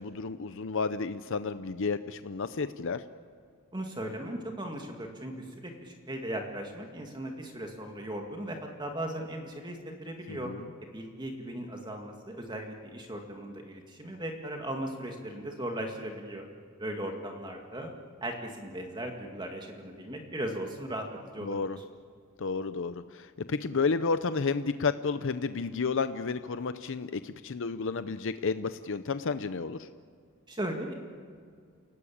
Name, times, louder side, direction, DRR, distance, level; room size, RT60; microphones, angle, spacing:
voice 1, 0.0-3.0 10.3-10.7 21.4-21.8 22.4-29.9, left 4 dB, 65° left, 11 dB, 0.7 m, -31 dB
voice 2, 3.7-10.5 10.9-16.5 16.8-17.9 18.2-21.1 21.3-21.6 30.5-30.9, right 1 dB, 20° right, 2 dB, 2.1 m, -37 dB
29.5 x 18.0 x 8.6 m, 2.1 s
head